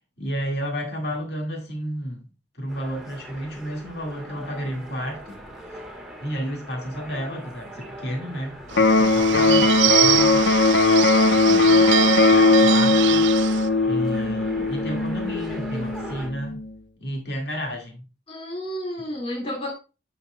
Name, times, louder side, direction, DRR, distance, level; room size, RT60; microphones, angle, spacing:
voice 1, 0.2-2.3 2.6-5.4 5.7-5.8 6.2-10.5 11.3-11.8 12.3-13.3 13.8-16.6 17.0-18.1, equal, 60° left, 1.9 m, -31 dB
sound 1, 2.7-16.3, right 1 dB, ahead, 1.4 m, -40 dB
Electric guitar, 8.7-16.7, left 3 dB, 80° left, 0.8 m, -19 dB
Bird / Bell, 8.7-13.7, right 12 dB, 75° right, 0.5 m, -25 dB
voice 2, 11.7-12.1 14.1-14.7 18.3-19.7, left 1 dB, 30° left, 2.2 m, -33 dB
9.6 x 5.8 x 2.2 m
head